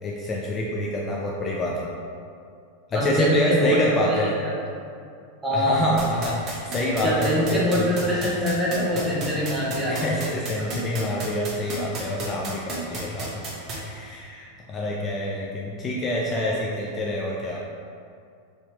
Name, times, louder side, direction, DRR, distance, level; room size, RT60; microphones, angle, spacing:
voice 1, 0.0-1.9 2.9-4.3 5.5-7.9 9.9-17.6, left 1 dB, 30° left, -3 dB, 0.4 m, -27 dB
voice 2, 2.9-3.8 4.0-4.1 4.4-4.5 4.9-5.0 5.4-5.8 7.0-10.3 10.6-10.7, equal, 10° right, -7 dB, 1.0 m, -24 dB
sound 1, 6.0-13.8, right 3 dB, 40° right, 0.9 m, -32 dB
3.5 x 2.7 x 2.8 m, 2.4 s
hypercardioid pair, 90°, 0 cm